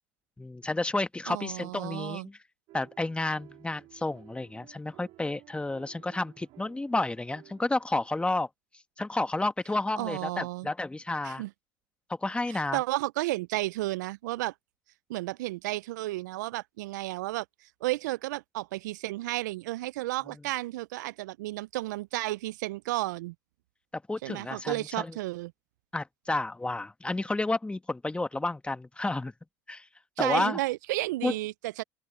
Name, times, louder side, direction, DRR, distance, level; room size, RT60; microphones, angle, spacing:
voice 1, 0.4-2.4 2.7-8.5 9.0-11.4 12.1-12.8 23.9-25.1 25.9-29.3 29.7-29.9 30.2-30.6 31.2-31.3, left 2 dB, 10° left, 1.6 m, -31 dB
voice 2, 1.3-2.3 10.0-10.7 11.2-11.5 12.5-14.5 15.1-17.5 17.8-23.3 24.2-25.5 30.2-31.8, right 18 dB, 80° right, 0.5 m, -32 dB
sound 1, 2.7-8.1, right 17 dB, 60° right, 3.3 m, -56 dB
open air
hypercardioid pair, 75°, 10 cm